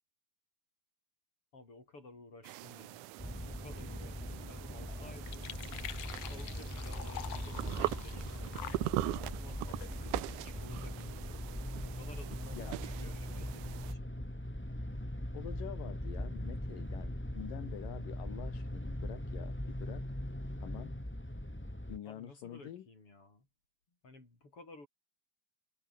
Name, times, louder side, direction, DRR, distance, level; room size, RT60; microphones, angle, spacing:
voice 1, 1.5-3.1 3.4-5.5 6.3-11.4 11.8-14.1 22.0-23.5 24.0-24.9, left 2 dB, 40° left, 8.3 m, -54 dB
sound 1, 2.4-13.9, right 18 dB, 80° right, 2.1 m, -41 dB
sound 2, 3.2-22.0, left 1 dB, 5° left, 2.1 m, -41 dB
sound 3, 3.7-10.8, left 12 dB, 60° left, 1.8 m, -49 dB
voice 2, 15.3-20.1 20.6-21.0 21.9-22.8, left 11 dB, 90° left, 3.4 m, -47 dB
omnidirectional pair, 3.8 m